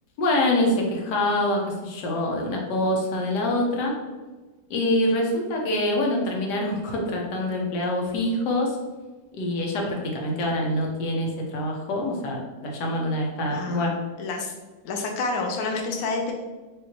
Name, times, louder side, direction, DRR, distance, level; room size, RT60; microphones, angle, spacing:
voice 1, 0.2-3.9 4.7-8.8 9.3-13.9, left 1 dB, 65° left, 0 dB, 1.2 m, -25 dB
voice 2, 13.5-13.9 14.2-14.5 14.8-16.3, left 3 dB, 80° left, 2 dB, 0.8 m, -28 dB
4.9 x 2.6 x 2.9 m, 1.2 s
omnidirectional pair, 2.2 m